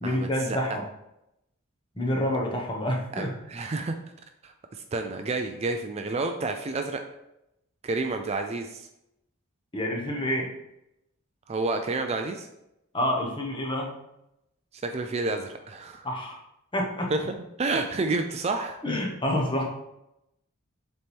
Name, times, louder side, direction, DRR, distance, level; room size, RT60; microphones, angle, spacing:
voice 1, 0.0-0.8 1.9-3.3 9.7-10.5 12.9-14.0 16.0-16.4 16.7-17.1 18.8-19.7, left 1 dB, 25° left, 0 dB, 1.2 m, -28 dB
voice 2, 3.1-3.9 4.4-7.0 7.8-8.9 11.5-12.5 14.7-16.1 17.1-18.8, right 3 dB, 30° right, 5 dB, 0.4 m, -30 dB
7.5 x 4.2 x 3.5 m, 0.86 s
head